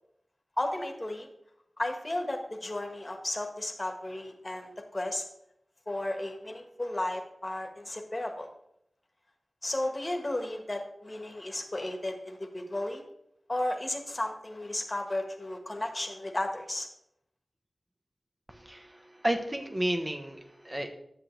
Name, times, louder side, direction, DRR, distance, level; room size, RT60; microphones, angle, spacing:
voice 1, 0.6-1.3 1.8-5.2 5.9-8.5 9.6-13.0 13.5-16.9, left 1 dB, 25° left, 4 dB, 1.4 m, -34 dB
voice 2, 18.5-20.9, right 1 dB, 20° right, 6 dB, 1.0 m, -32 dB
10.5 x 7.8 x 3.3 m, 0.76 s
wide cardioid pair, 75°, 0 cm